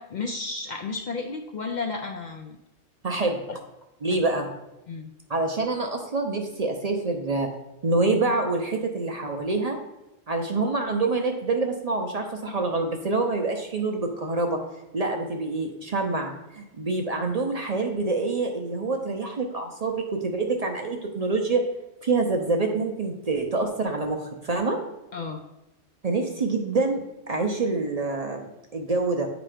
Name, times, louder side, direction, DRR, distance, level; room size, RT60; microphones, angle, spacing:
voice 1, 0.0-2.6 3.5-3.6 4.9-5.1 25.1-25.4, left 4 dB, 55° left, 4 dB, 0.5 m, -32 dB
voice 2, 3.0-3.4 4.0-4.5 5.3-7.5 7.8-9.8 10.3-14.6 14.9-21.6 22.0-24.8 26.0-27.0 27.3-29.3, right 3 dB, 45° right, 2 dB, 0.6 m, -26 dB
8.7 x 3.0 x 4.9 m, 0.93 s
omnidirectional pair, 1.1 m